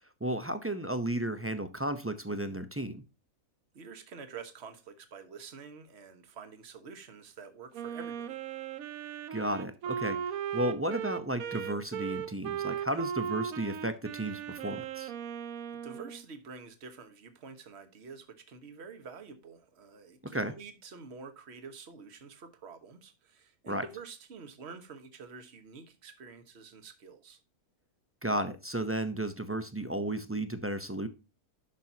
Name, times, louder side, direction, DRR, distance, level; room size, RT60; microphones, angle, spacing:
voice 1, 0.2-3.0 9.3-15.1 20.2-20.5 23.7-23.8 28.2-31.1, right 1 dB, 20° right, 0.4 m, -33 dB
voice 2, 3.7-8.4 12.9-13.1 15.7-27.4, right 5 dB, 50° right, 1.4 m, -48 dB
Wind instrument woodwind instrument, 7.7-16.2, right 8 dB, 70° right, 1.1 m, -37 dB
11.0 x 5.9 x 2.8 m
omnidirectional pair, 1.6 m